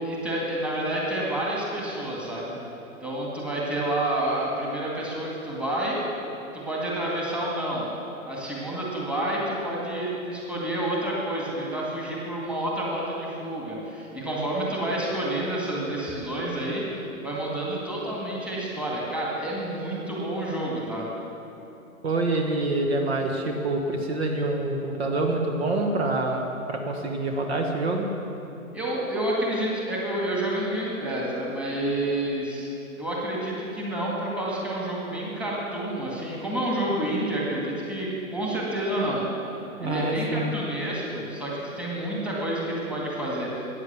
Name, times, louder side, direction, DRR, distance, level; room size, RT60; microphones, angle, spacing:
voice 1, 0.0-2.5 3.0-6.0 6.5-7.9 8.3-16.8 17.2-21.1 28.7-32.7 33.0-39.2 39.8-43.7, right 1 dB, 5° right, -5 dB, 2.1 m, -29 dB
voice 2, 22.0-28.1 39.8-40.5, right 2 dB, 45° right, 2 dB, 1.5 m, -26 dB
14.0 x 9.9 x 7.5 m, 2.9 s
figure-of-eight pair, 125°, 42 cm